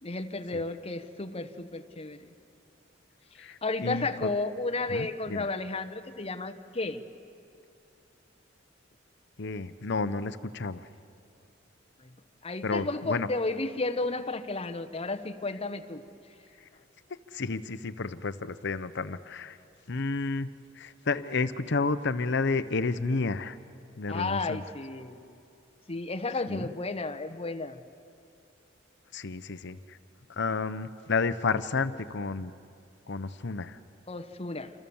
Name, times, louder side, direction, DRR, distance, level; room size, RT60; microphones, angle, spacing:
voice 1, 0.0-2.3 3.4-7.0 12.0-12.1 12.4-16.0 24.1-25.2 25.9-27.8 34.1-34.7, left 3 dB, 30° left, 8 dB, 1.2 m, -33 dB
voice 2, 3.4-4.3 4.9-5.5 9.4-10.8 12.6-13.3 17.3-19.6 19.9-23.6 24.0-24.6 26.5-26.7 29.1-30.0 30.4-32.5 33.1-33.8, left 4 dB, 65° left, 13 dB, 0.8 m, -31 dB
27.5 x 27.0 x 7.1 m, 2.5 s
head